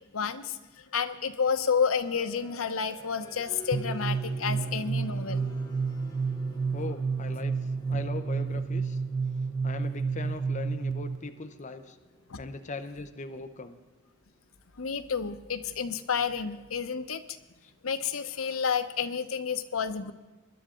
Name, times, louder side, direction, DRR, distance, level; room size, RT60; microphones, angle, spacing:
voice 1, 0.1-0.6 0.9-5.5 12.3-12.4 14.8-17.2 17.8-20.1, left 6 dB, 85° left, 9 dB, 0.9 m, -30 dB
sound 1, 1.6-14.1, equal, 20° left, 2.2 m, -50 dB
sound 2, 3.7-11.3, right 4 dB, 65° right, 0.7 m, -30 dB
voice 2, 6.7-7.5 7.9-9.0 9.6-12.0 12.4-13.8, left 3 dB, 35° left, 6 dB, 0.7 m, -39 dB
20.0 x 11.5 x 3.7 m, 1.2 s
head